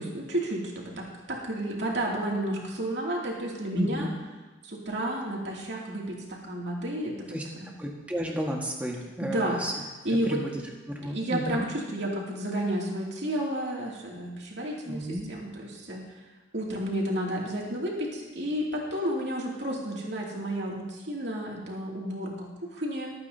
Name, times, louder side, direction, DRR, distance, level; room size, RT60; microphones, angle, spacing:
voice 1, 0.0-4.1 4.6-7.2 7.6-7.7 9.2-9.6 10.0-10.4 11.1-16.0 16.5-23.1, right 1 dB, 70° right, -3 dB, 2.5 m, -31 dB
voice 2, 3.7-4.1 7.3-7.4 7.8-9.7 10.2-10.6 10.9-11.7 14.9-15.3, equal, 10° right, -1 dB, 1.5 m, -32 dB
22.5 x 8.8 x 2.8 m, 1.2 s
head